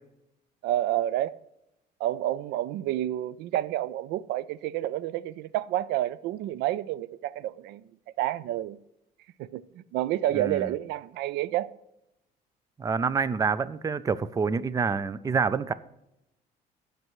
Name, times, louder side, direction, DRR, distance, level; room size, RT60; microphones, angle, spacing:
voice 1, 0.6-1.4 2.0-7.8 8.2-8.8 9.4-11.7, right 13 dB, 85° right, 0.4 m, -29 dB
voice 2, 10.3-10.7 12.8-15.7, right 5 dB, 20° right, 0.5 m, -27 dB
17.5 x 6.7 x 3.1 m
cardioid pair, 110°, 17 cm